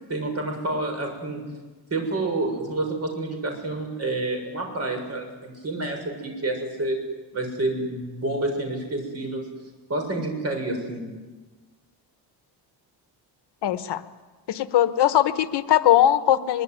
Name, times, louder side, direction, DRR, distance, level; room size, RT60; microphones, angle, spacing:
voice 1, 0.1-1.4 1.9-7.0 7.3-9.4 9.9-11.1, right 2 dB, 35° right, 3 dB, 7.0 m, -28 dB
voice 2, 13.6-14.0 14.5-16.6, left 12 dB, 70° left, 11 dB, 1.2 m, -20 dB
23.0 x 22.5 x 9.6 m, 1.3 s
cardioid pair, 155°, 42 cm